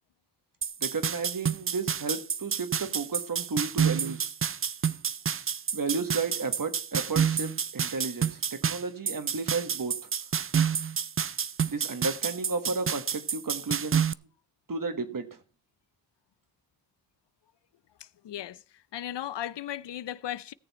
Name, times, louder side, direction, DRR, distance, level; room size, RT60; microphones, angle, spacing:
sound 1, 0.6-14.1, right 7 dB, 35° right, 0.4 m, -29 dB
voice 1, 0.8-4.3 5.7-10.1 11.7-14.0 14.7-15.4, right 4 dB, 55° right, 1.6 m, -33 dB
voice 2, 18.2-18.6 18.9-20.5, left 11 dB, 80° left, 0.5 m, -36 dB
17.0 x 6.9 x 4.2 m
cardioid pair, 60°, 41 cm